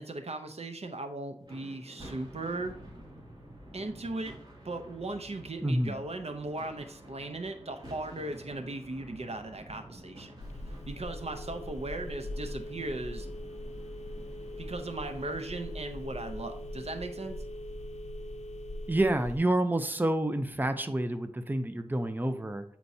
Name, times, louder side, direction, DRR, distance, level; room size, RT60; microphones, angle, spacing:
voice 1, 0.0-2.8 3.7-4.3 4.6-10.3 10.9-13.3 14.6-17.4, right 2 dB, 70° right, 6 dB, 0.7 m, -38 dB
sound 1, 1.4-17.8, right 1 dB, 40° right, 2.3 m, -51 dB
voice 2, 5.6-6.0 18.9-22.6, right 1 dB, 15° right, 8 dB, 0.6 m, -28 dB
Telephone, 10.4-19.4, left 1 dB, 85° left, 0.5 m, -41 dB
8.3 x 4.5 x 2.7 m, 0.68 s
wide cardioid pair, 55°, 11 cm